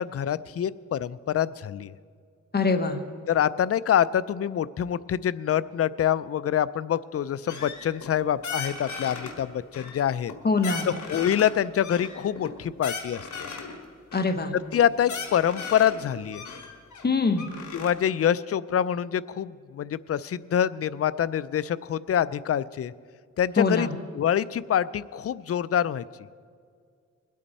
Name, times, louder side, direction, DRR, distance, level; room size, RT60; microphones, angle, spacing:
voice 1, 0.0-1.9 3.3-10.3 10.9-13.3 14.7-16.4 17.7-22.9 23.4-26.0, left 9 dB, 55° left, 17 dB, 0.4 m, -26 dB
voice 2, 2.5-3.0 10.4-10.9 14.1-14.5 17.0-17.5 23.6-23.9, left 4 dB, 35° left, 7 dB, 1.1 m, -23 dB
sound 1, 7.5-8.1 8.4-9.3 9.7-10.4 10.6-11.5 11.8-13.8 14.1-14.3 14.7-14.8 15.0-16.0 16.3-17.9, left 5 dB, 80° left, 1.6 m, -37 dB
21.5 x 8.6 x 4.2 m, 2.1 s
cardioid pair, 70°, 29 cm